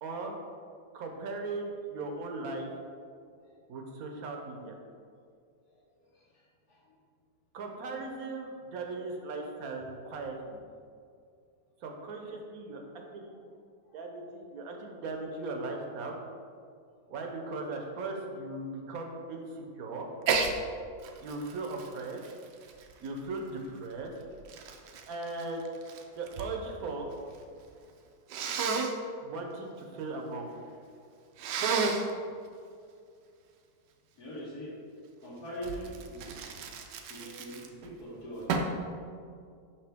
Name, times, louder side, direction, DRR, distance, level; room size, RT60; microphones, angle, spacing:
voice 1, 0.0-0.3 0.9-2.7 3.7-4.8 7.5-10.6 11.8-13.3 13.9-16.2 17.1-20.1 21.2-22.2 23.0-24.1 25.1-25.7 26.1-27.0 29.2-30.5, right 3 dB, 65° right, 2 dB, 1.1 m, -38 dB
Sneeze, 20.2-20.5 21.0-23.4 24.1-26.5 26.8-27.4 28.3-28.9 31.4-32.1 35.6-37.9 38.5-38.8, right 5 dB, 85° right, 1.2 m, -32 dB
voice 2, 34.2-34.8 35.2-36.3 37.1-38.5, equal, 65° left, -8 dB, 1.5 m, -42 dB
5.7 x 5.7 x 3.4 m, 2.3 s
omnidirectional pair, 1.8 m